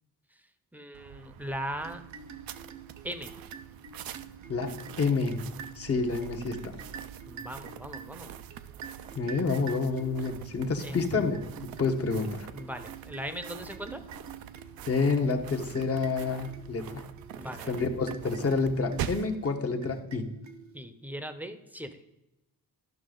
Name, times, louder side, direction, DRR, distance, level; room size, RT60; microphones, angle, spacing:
voice 1, 0.7-2.0 3.0-3.3 7.3-8.3 10.8-11.0 12.5-14.0 17.3-17.8 20.7-22.0, right 1 dB, 5° right, 9 dB, 0.7 m, -39 dB
sound 1, 0.9-19.4, right 10 dB, 90° right, 0.6 m, -44 dB
sound 2, 1.8-21.0, right 6 dB, 55° right, 0.8 m, -47 dB
voice 2, 4.5-5.5 5.8-6.8 9.1-12.5 14.9-17.0 17.7-20.3, left 4 dB, 40° left, 4 dB, 1.1 m, -29 dB
12.0 x 5.8 x 3.8 m, 0.96 s
cardioid pair, 120°, 35 cm